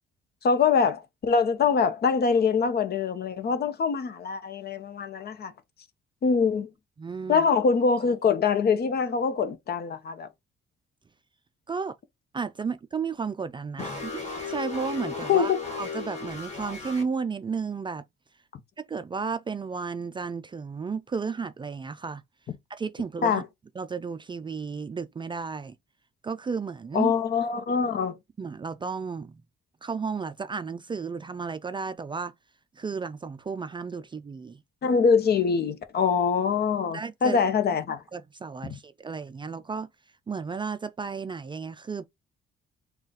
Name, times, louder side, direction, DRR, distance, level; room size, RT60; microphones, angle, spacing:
voice 1, 0.4-5.5 6.2-6.7 7.3-10.3 15.3-15.6 23.2-23.4 26.9-28.2 34.8-38.0, left 5 dB, 55° left, 0.8 m, -24 dB
voice 2, 7.0-7.5 11.7-11.9 12.3-15.5 15.8-18.0 18.8-22.2 22.7-23.4 23.8-25.7 26.2-27.1 28.4-29.4 29.8-32.3 32.8-34.6 36.9-37.4 38.1-39.9 40.3-42.0, right 5 dB, 25° right, 0.3 m, -33 dB
sound 1, 13.8-17.0, left 5 dB, 35° left, 2.0 m, -35 dB
3.8 x 2.4 x 3.9 m
cardioid pair, 90°, 20 cm